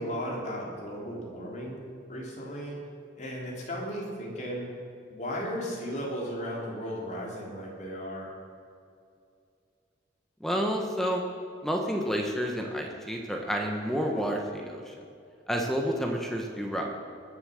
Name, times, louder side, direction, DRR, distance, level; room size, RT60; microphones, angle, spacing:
voice 1, 0.0-1.8 2.1-2.8 3.2-4.7 5.1-8.3, equal, 35° left, -2 dB, 3.2 m, -35 dB
voice 2, 10.4-11.2 11.6-14.9 15.5-16.9, equal, ahead, 1 dB, 1.2 m, -30 dB
20.5 x 7.3 x 6.5 m, 2.4 s
head